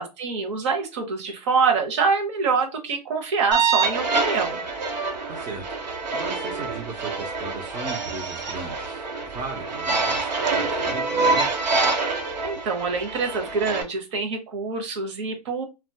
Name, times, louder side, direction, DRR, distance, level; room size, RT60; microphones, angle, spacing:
voice 1, 0.0-4.6 12.4-15.6, right 5 dB, 45° right, 4 dB, 0.8 m, -25 dB
sound 1, 3.5-13.8, right 4 dB, 85° right, 0.9 m, -26 dB
voice 2, 5.3-11.5, right 3 dB, 15° right, 0 dB, 0.5 m, -37 dB
2.7 x 2.2 x 2.7 m, 0.27 s
hypercardioid pair, 135°, 21 cm